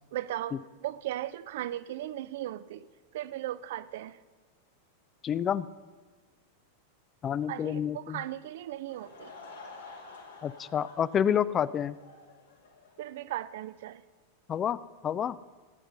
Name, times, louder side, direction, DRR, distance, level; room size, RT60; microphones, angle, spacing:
voice 1, 0.1-2.9 3.1-4.2 7.5-9.3 13.0-14.0, right 13 dB, 55° right, 16 dB, 0.4 m, -37 dB
voice 2, 5.2-5.7 7.2-8.2 10.4-12.0 14.5-14.8 15.0-15.4, left 9 dB, 25° left, 18 dB, 0.3 m, -28 dB
Laughter / Crowd, 8.7-13.2, left 3 dB, 75° left, 2.3 m, -50 dB
15.5 x 9.3 x 5.5 m, 1.4 s
figure-of-eight pair, 90°, 0 cm